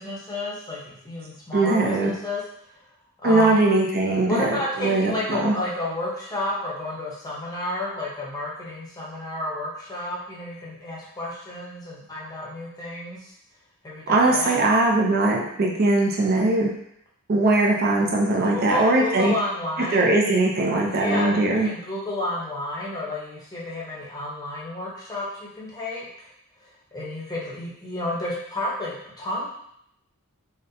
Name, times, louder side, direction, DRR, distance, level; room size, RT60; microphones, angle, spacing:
voice 1, 0.0-2.4 2.7-2.8 3.2-3.6 4.3-13.3 13.8-14.6 18.4-20.1 20.8-26.1 26.6-29.5, left 1 dB, 15° left, -5 dB, 0.7 m, -31 dB
voice 2, 1.5-2.1 3.2-5.6 14.1-16.7 17.3-19.3 19.9-21.7, right 2 dB, 45° right, -1 dB, 0.5 m, -20 dB
3.8 x 2.1 x 2.6 m, 0.73 s
head